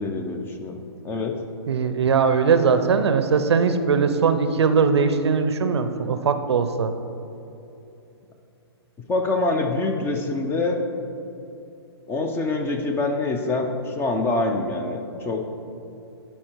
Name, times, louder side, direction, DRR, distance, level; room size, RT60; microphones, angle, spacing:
voice 1, 0.0-1.4 9.1-10.8 12.1-15.4, left 2 dB, 15° left, 4 dB, 0.7 m, -25 dB
voice 2, 1.7-6.9, right 5 dB, 75° right, 9 dB, 0.6 m, -20 dB
11.5 x 4.5 x 4.6 m, 2.8 s
hypercardioid pair, 130°, 14 cm